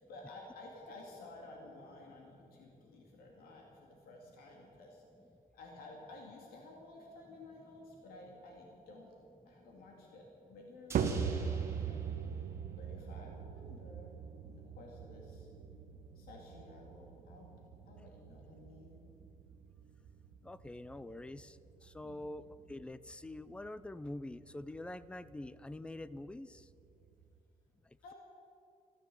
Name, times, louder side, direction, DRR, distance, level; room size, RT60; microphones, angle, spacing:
voice 1, 0.0-5.0 5.5-9.2 9.5-12.1 12.8-14.2 14.4-15.5 16.1-17.5 17.9-19.0 22.0-22.4 28.0-28.1, left 2 dB, 80° left, 0 dB, 2.6 m, -53 dB
sound 1, 10.9-13.3 13.6-13.7, right 2 dB, 15° right, 2.7 m, -51 dB
sound 2, 10.9-27.4, right 7 dB, 60° right, 1.2 m, -42 dB
voice 2, 20.4-21.6 21.8-22.4 22.7-26.6, left 1 dB, 5° left, 16 dB, 0.4 m, -45 dB
14.0 x 12.5 x 7.8 m, 2.7 s
cardioid pair, 145°, 15 cm